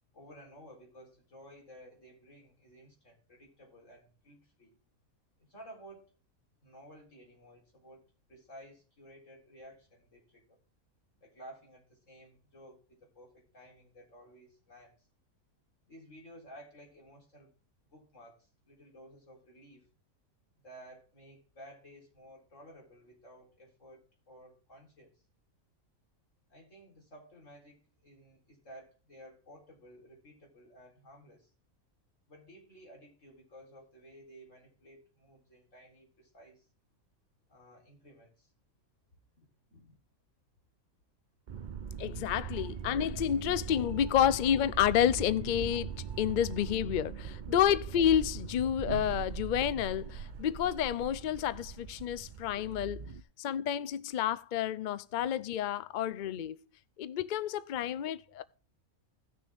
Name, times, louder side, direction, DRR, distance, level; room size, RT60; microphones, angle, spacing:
voice 1, 0.1-4.7 5.4-6.1 6.6-10.6 11.2-15.1 15.9-17.5 17.9-19.9 20.6-25.1 26.5-31.5 32.3-36.7 37.5-38.5 39.4-40.0, equal, 55° left, 4.1 m, -54 dB
sound 1, 41.5-53.2, right 7 dB, 55° right, 0.5 m, -41 dB
voice 2, 42.0-45.9 46.2-53.0 53.4-56.6 57.0-58.4, left 10 dB, 85° left, 0.4 m, -30 dB
17.0 x 6.4 x 3.5 m
omnidirectional pair, 1.5 m